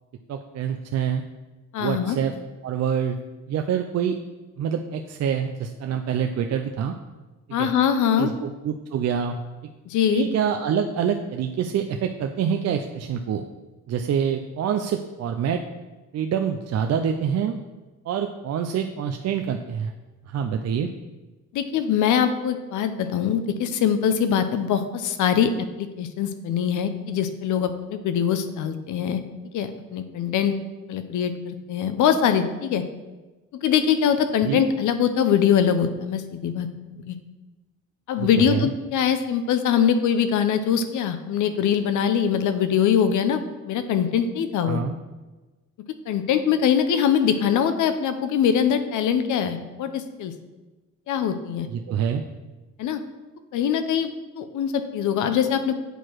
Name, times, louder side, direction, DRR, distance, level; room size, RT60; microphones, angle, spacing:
voice 1, 0.3-1.2 1.8-2.3 2.6-3.2 3.5-4.2 4.6-7.0 7.6-7.7 8.2-9.4 10.1-13.4 13.9-15.6 16.1-17.5 18.0-19.9 20.3-20.9 34.4-34.6 38.2-38.7 44.6-44.9 51.7-52.2, right 8 dB, 60° right, 5 dB, 0.5 m, -26 dB
voice 2, 1.7-2.2 7.5-8.3 9.9-10.3 21.5-29.2 29.5-30.6 30.9-32.8 33.6-36.7 37.1-37.2 38.1-43.4 43.7-44.8 46.1-50.3 51.1-51.7 52.8-53.0 53.5-54.1 54.4-55.7, left 8 dB, 75° left, 9 dB, 0.7 m, -23 dB
8.0 x 4.6 x 4.5 m, 1.2 s
cardioid pair, 90°, 30 cm